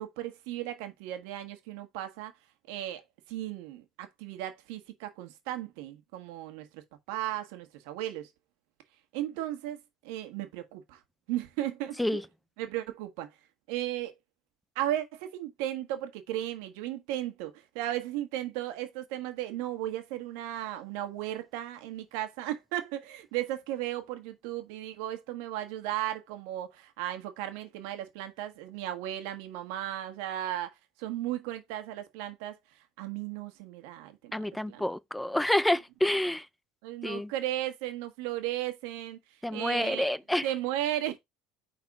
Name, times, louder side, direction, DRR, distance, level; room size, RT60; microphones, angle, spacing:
voice 1, 0.0-2.3 2.7-3.0 3.3-6.8 7.1-8.3 9.1-9.8 10.0-11.0 11.3-12.2 12.6-13.3 13.7-14.1 14.7-32.5 33.0-34.8 36.8-39.2 39.5-40.1 40.4-41.2, right 13 dB, 80° right, 1.5 m, -35 dB
voice 2, 34.3-36.5 37.0-37.3 39.4-40.5, left 1 dB, 5° left, 0.4 m, -28 dB
5.5 x 4.1 x 4.8 m
cardioid pair, 125°, 0 cm